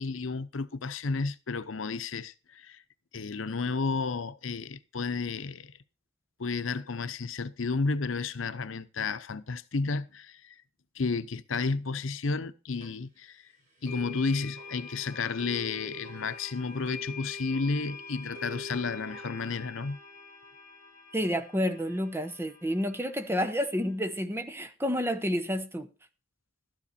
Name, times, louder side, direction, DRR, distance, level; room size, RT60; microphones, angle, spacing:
voice 1, 0.0-2.8 3.1-5.7 6.4-10.5 11.0-13.4 13.8-20.0, left 4 dB, 90° left, 0.8 m, -32 dB
sound 1, 12.8-12.9 13.8-23.9, left 3 dB, 40° right, 7.6 m, -45 dB
voice 2, 21.1-25.9, equal, 10° right, 1.0 m, -30 dB
13.0 x 10.5 x 4.3 m
head